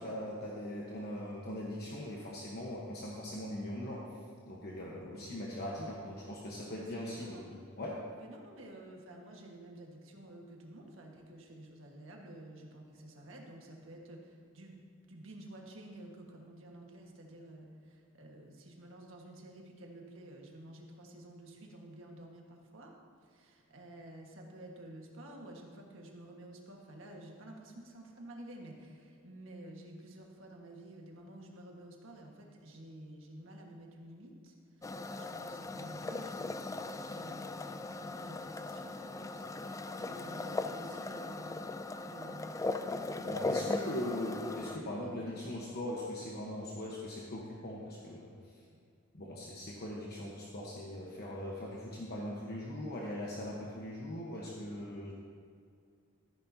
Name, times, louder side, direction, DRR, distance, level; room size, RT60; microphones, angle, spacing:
voice 1, 0.0-4.0 4.5-8.0 43.2-48.3 49.1-55.1, left 1 dB, 50° left, -3 dB, 1.1 m, -40 dB
voice 2, 5.0-5.4 6.6-7.5 8.1-14.8 15.1-22.9 23.2-41.7 42.0-42.6 43.0-44.3 44.8-45.5 48.7-48.8, right 1 dB, 70° right, 0 dB, 1.6 m, -51 dB
sound 1, 34.8-44.8, left 3 dB, 15° left, 0.3 m, -38 dB
13.5 x 10.5 x 2.8 m, 2.3 s
head